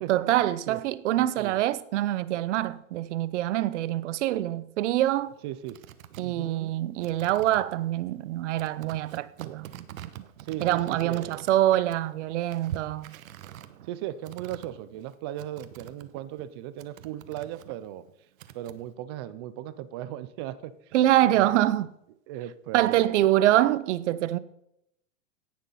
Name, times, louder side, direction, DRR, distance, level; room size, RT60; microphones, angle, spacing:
voice 1, 0.1-5.3 6.2-9.7 10.6-13.1 20.9-21.9 22.7-24.4, right 13 dB, 60° right, 0.8 m, -25 dB
sound 1, 4.9-16.5 16.8-18.9, right 11 dB, 80° right, 1.2 m, -45 dB
voice 2, 5.4-5.8 6.2-6.7 10.4-11.4 13.8-18.0 18.5-20.7 21.3-21.5 22.3-23.2, right 12 dB, 20° right, 0.3 m, -37 dB
17.0 x 6.6 x 5.5 m
supercardioid pair, 155°, 40 cm